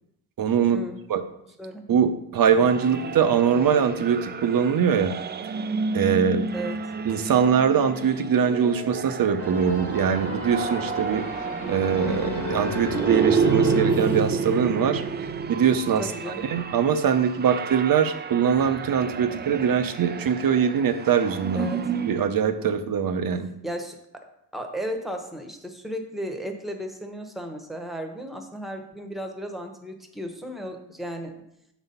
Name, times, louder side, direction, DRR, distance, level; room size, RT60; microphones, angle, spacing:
voice 1, 0.4-0.8 1.1-1.2 1.9-5.2 5.9-6.5 7.0-11.2 11.7-15.0 15.5-16.1 16.5-21.7 22.0-23.5, right 7 dB, 50° right, 10 dB, 0.8 m, -22 dB
sound 1, 2.5-22.3, right 5 dB, 25° right, 0.3 m, -30 dB
sound 2, 9.4-15.0, left 3 dB, 30° left, 1.5 m, -34 dB
voice 2, 16.0-16.4 21.5-21.8 23.6-24.2 24.5-31.3, equal, ahead, 5 dB, 1.1 m, -34 dB
5.9 x 4.1 x 5.5 m, 0.79 s
cardioid pair, 80°, 43 cm